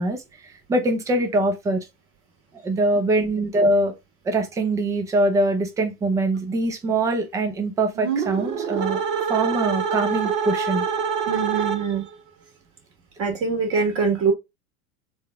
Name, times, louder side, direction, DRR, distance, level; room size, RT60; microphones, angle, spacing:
voice 1, 0.0-1.8 2.6-3.9 4.2-9.0 9.3-10.8, right 2 dB, 10° right, 0.3 m, -23 dB
sound 1, 8.0-12.1, right 7 dB, 55° right, 1.0 m, -26 dB
voice 2, 11.3-12.1 13.2-14.3, right 5 dB, 30° right, 1.6 m, -23 dB
3.9 x 2.3 x 3.2 m
hypercardioid pair, 110°, 44 cm